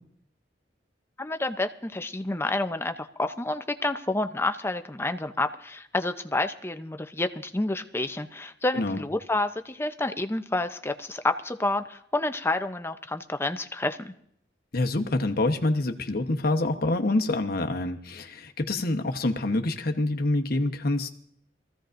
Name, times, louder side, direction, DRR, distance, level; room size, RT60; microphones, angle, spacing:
voice 1, 1.2-14.1, left 2 dB, 15° left, 8 dB, 0.6 m, -29 dB
voice 2, 14.7-21.1, left 2 dB, 55° left, 5 dB, 1.0 m, -26 dB
22.5 x 15.0 x 2.6 m, 0.70 s
head